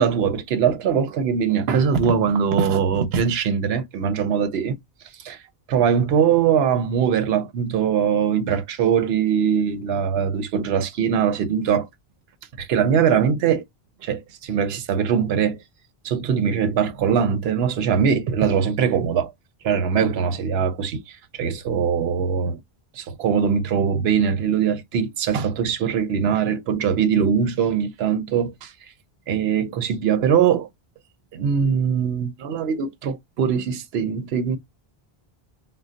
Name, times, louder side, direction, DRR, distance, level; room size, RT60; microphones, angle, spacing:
voice 1, 0.0-4.7 5.2-5.4 5.7-11.9 12.6-13.6 14.0-15.6 16.0-19.3 19.6-22.6 22.9-28.7 29.3-30.7 31.3-34.6, right 7 dB, 80° right, 0.8 m, -21 dB
2.3 x 2.0 x 3.7 m
omnidirectional pair, 1.0 m